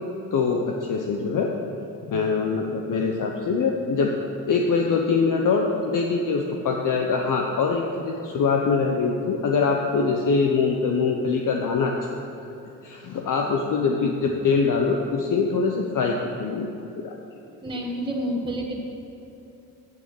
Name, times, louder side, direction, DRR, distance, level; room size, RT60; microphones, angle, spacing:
voice 1, 0.3-1.5 2.1-4.1 4.5-12.2 12.8-16.7 17.0-17.2, left 4 dB, 55° left, 1 dB, 1.0 m, -23 dB
voice 2, 17.6-18.8, equal, 15° right, -2 dB, 1.5 m, -29 dB
9.9 x 6.6 x 7.2 m, 2.8 s
supercardioid pair, 65°, 38 cm